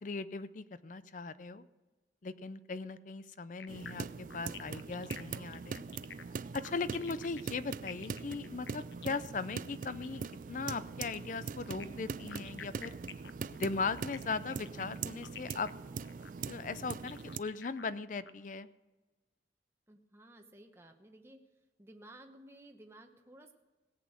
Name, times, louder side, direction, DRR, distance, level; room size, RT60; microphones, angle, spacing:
voice 1, 0.0-1.6 2.2-5.8 6.5-10.2 10.5-12.9 13.5-15.7 16.5-18.7, left 4 dB, 45° left, 15 dB, 0.5 m, -38 dB
sound 1, 3.6-10.4 11.6-18.3, left 8 dB, 80° left, 0.7 m, -50 dB
sound 2, 3.7-17.4, right 5 dB, 45° right, 0.4 m, -42 dB
voice 2, 19.9-21.4 21.8-23.5, right 1 dB, 15° right, 4 dB, 0.9 m, -55 dB
17.5 x 8.3 x 6.3 m, 1.2 s
head